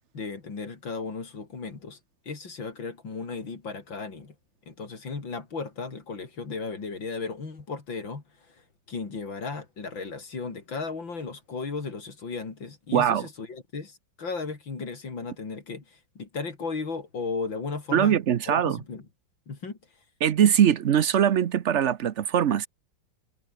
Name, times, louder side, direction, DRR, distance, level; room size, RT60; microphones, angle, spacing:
voice 1, 0.1-2.0 2.3-4.3 4.7-8.6 8.9-18.2 18.5-19.0 19.5-19.8, left 4 dB, 85° left, 4.4 m, -35 dB
voice 2, 12.9-13.3 17.9-18.8 20.2-22.7, right 9 dB, 55° right, 0.8 m, -22 dB
omnidirectional pair, 2.0 m